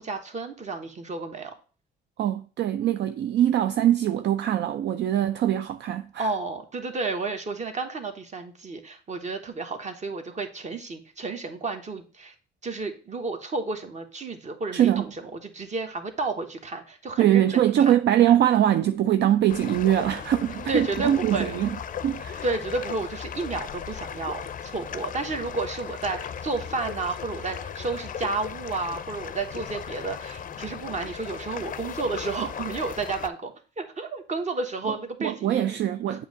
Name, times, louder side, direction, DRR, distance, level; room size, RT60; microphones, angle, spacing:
voice 1, 0.0-1.5 6.2-12.3 12.6-17.6 20.7-21.6 22.4-35.8 36.1-36.2, right 3 dB, 35° right, 1.1 m, -31 dB
voice 2, 2.2-6.3 14.7-15.1 17.2-21.8 22.0-22.4 34.8-36.2, right 11 dB, 60° right, 0.4 m, -23 dB
sound 1, 19.5-33.3, left 7 dB, 40° left, 0.5 m, -37 dB
7.5 x 2.8 x 5.2 m
cardioid pair, 90°, 20 cm